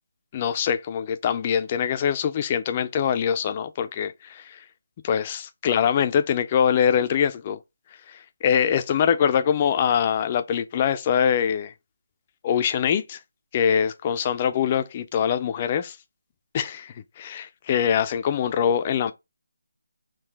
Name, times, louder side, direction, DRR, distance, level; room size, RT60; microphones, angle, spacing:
voice 1, 0.3-4.4 5.0-7.6 8.1-11.7 12.4-13.2 13.5-16.0 16.5-19.1, left 8 dB, 25° left, 0.4 m, -23 dB
3.7 x 2.6 x 3.3 m
figure-of-eight pair, 155°, 0 cm